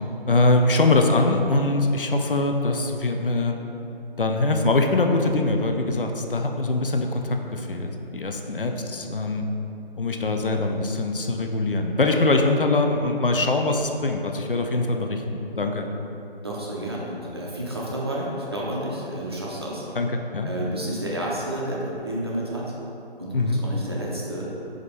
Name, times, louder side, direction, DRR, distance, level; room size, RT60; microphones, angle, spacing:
voice 1, 0.3-3.5 4.2-9.5 10.0-15.9 20.0-20.1 20.3-20.5 23.3-23.6, left 2 dB, 60° left, 4 dB, 0.6 m, -23 dB
voice 2, 8.4-8.7 16.4-19.9 20.4-22.7 23.2-24.5, right 1 dB, 25° right, -5 dB, 0.7 m, -31 dB
5.1 x 4.1 x 5.1 m, 2.9 s
figure-of-eight pair, 155°, 31 cm